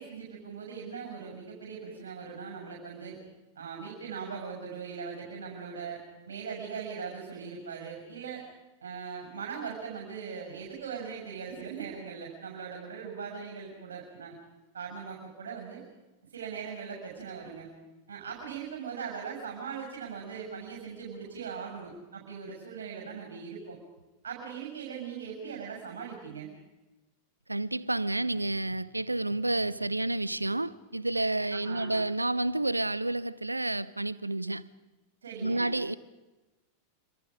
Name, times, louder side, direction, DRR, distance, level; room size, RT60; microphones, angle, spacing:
voice 1, 0.0-3.2 3.6-6.0 6.2-8.4 8.8-14.4 14.7-15.8 16.3-17.7 18.1-23.8 24.2-26.5 31.5-31.9 35.2-35.7, right 6 dB, 65° right, 7.0 m, -40 dB
voice 2, 27.5-34.7 35.4-35.9, right 2 dB, 85° right, 0.8 m, -30 dB
27.5 x 27.0 x 5.1 m
figure-of-eight pair, 90°, 0 cm